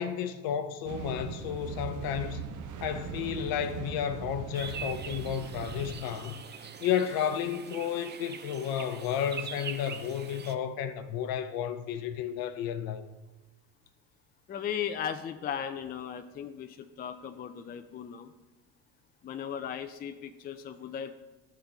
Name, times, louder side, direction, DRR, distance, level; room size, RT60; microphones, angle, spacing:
voice 1, 0.0-2.5 2.8-6.4 6.8-13.0, left 9 dB, 55° left, 0.8 m, -32 dB
sound 1, 0.9-5.9, right 7 dB, 45° right, 1.0 m, -40 dB
sound 2, 4.5-10.5, right 7 dB, 25° right, 0.6 m, -43 dB
voice 2, 14.5-18.3 19.2-21.1, left 8 dB, 20° left, 0.4 m, -37 dB
13.0 x 4.3 x 3.8 m
hypercardioid pair, 70°, 44 cm